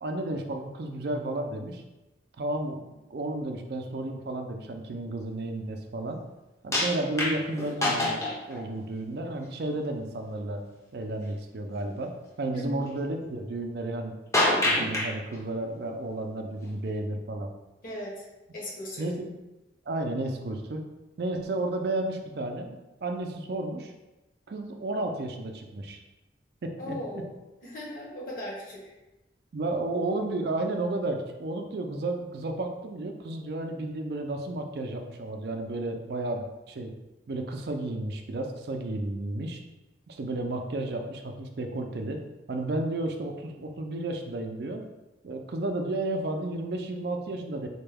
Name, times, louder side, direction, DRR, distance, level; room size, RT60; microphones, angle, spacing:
voice 1, 0.0-1.8 2.4-6.2 6.6-8.2 8.5-10.6 10.9-14.2 14.6-17.5 19.0-19.3 19.9-20.9 21.2-23.9 24.5-26.0 26.6-27.0 29.5-36.9 37.3-39.6 40.1-42.2 42.5-44.8 45.2-47.7, right 2 dB, 65° right, 5 dB, 0.4 m, -32 dB
sound 1, 6.7-8.6 9.3-9.4 14.3-15.1 16.6-16.7, left 1 dB, 15° left, 0.6 m, -26 dB
voice 2, 12.5-12.8 17.8-18.3 18.5-19.1 26.8-27.3 27.6-28.9, left 1 dB, 50° left, -4 dB, 1.1 m, -38 dB
4.2 x 2.2 x 3.3 m, 1.0 s
head